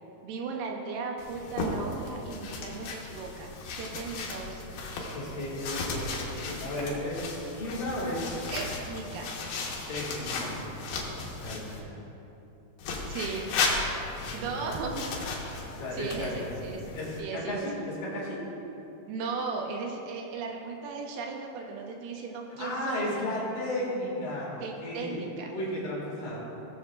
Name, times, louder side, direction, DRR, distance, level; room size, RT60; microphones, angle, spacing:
voice 1, 0.2-3.5 3.8-4.7 8.5-9.4 13.1-13.5 14.3-15.0 15.9-16.8 17.2-17.7 19.1-23.1 23.3-23.5 24.6-25.5, right 4 dB, 80° right, 1 dB, 2.6 m, -36 dB
sound 1, 1.2-11.8 12.8-17.2, left 3 dB, 80° left, 3.1 m, -35 dB
voice 2, 5.0-8.3 9.9-10.6 11.3-11.9 14.2-14.7 15.7-16.6 16.9-18.4 22.6-25.2 25.5-26.4, left 1 dB, 60° left, -6 dB, 3.4 m, -34 dB
17.0 x 7.4 x 2.4 m, 3.0 s
omnidirectional pair, 4.7 m